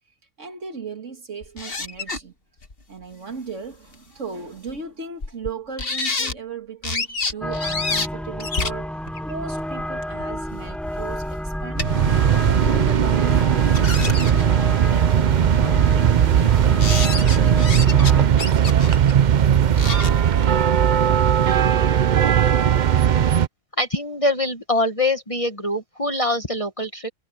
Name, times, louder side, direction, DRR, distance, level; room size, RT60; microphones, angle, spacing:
voice 1, 0.4-2.3 2.9-11.9 12.3-16.6 17.1-18.8, right 4 dB, 55° right, 2.3 m, -37 dB
sound 1, 1.4-2.2 2.6-2.7 3.9-4.0 4.7-4.8 5.2-5.5 5.8-6.3 6.8-8.1 8.4-10.2 10.9-11.0 11.3-12.1 12.7-12.8 13.5-14.5 15.1-15.2 15.4-15.7 16.1-16.4 16.8-18.1 18.4-20.1, left 3 dB, 40° left, 1.9 m, -28 dB
sound 2, 7.4-18.3, equal, ahead, 0.5 m, -30 dB
sound 3, 11.8-23.5, right 9 dB, 75° right, 0.4 m, -18 dB
voice 2, 23.8-27.1, left 1 dB, 25° left, 1.4 m, -23 dB
omnidirectional pair, 1.5 m